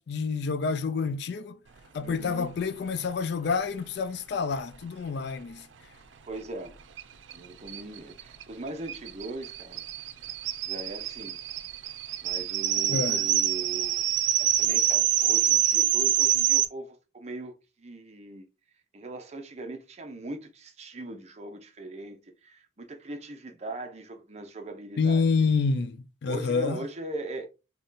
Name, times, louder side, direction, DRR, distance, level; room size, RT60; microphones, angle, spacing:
voice 1, 0.0-1.6 1.9-5.7 12.9-13.3 25.0-26.9, left 4 dB, 60° left, 0.4 m, -28 dB
voice 2, 2.0-2.5 6.3-6.8 7.3-9.9 10.6-11.4 12.2-14.0 14.4-18.5 18.9-25.2 26.2-27.5, right 2 dB, 35° right, 0.7 m, -40 dB
sound 1, 7.0-7.1 7.3-7.4 7.7-16.6, right 11 dB, 85° right, 0.5 m, -26 dB
3.8 x 2.3 x 3.8 m
head